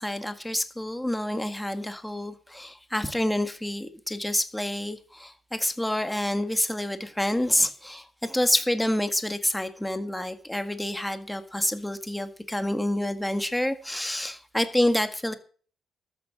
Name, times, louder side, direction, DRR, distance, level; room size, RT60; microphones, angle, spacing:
voice 1, 0.0-15.3, left 1 dB, 5° left, 8 dB, 1.8 m, -28 dB
13.5 x 8.8 x 7.6 m, 0.42 s
cardioid pair, 90°, 0 cm